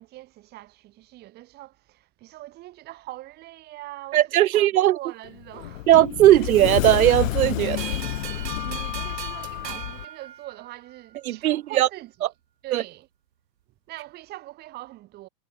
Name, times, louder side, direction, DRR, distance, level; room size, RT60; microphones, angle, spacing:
voice 1, 0.0-5.9 6.3-6.5 7.6-12.1 12.6-13.1 13.9-15.3, right 17 dB, 20° right, 1.3 m, -42 dB
voice 2, 4.1-5.0 5.9-7.8 11.2-11.9 12.7-12.8, right 14 dB, 60° right, 0.8 m, -18 dB
Sliding door, 5.2-10.0, left 15 dB, 55° left, 0.6 m, -29 dB
sound 1, 7.8-11.0, right 9 dB, 90° right, 2.1 m, -38 dB
hypercardioid pair, 150°, 49 cm